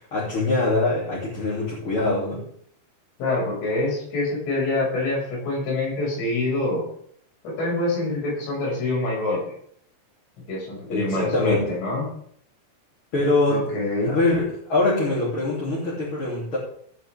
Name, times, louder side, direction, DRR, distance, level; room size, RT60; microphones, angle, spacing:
voice 1, 0.1-2.4 10.9-11.7 13.1-13.7 14.0-16.6, left 2 dB, 30° left, -8 dB, 3.4 m, -23 dB
voice 2, 3.2-6.8 7.4-9.5 10.5-12.1 13.5-14.2, left 2 dB, 65° left, -4 dB, 8.9 m, -25 dB
17.5 x 9.4 x 3.7 m, 0.64 s
omnidirectional pair, 6.0 m